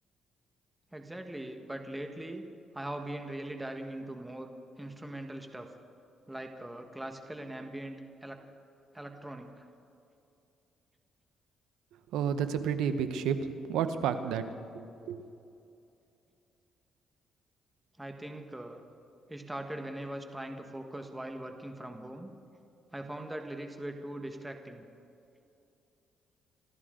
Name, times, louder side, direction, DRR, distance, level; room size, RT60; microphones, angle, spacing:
voice 1, 0.9-2.4 2.7-4.5 4.8-5.7 6.3-8.4 8.9-9.7 18.0-18.8 19.3-22.3 22.9-24.8, right 1 dB, 10° right, 4 dB, 1.5 m, -41 dB
voice 2, 12.1-13.4 13.7-14.4 14.7-15.2, right 8 dB, 90° right, 10 dB, 1.0 m, -30 dB
27.0 x 14.0 x 3.8 m, 2.6 s
cardioid pair, 90°, 0 cm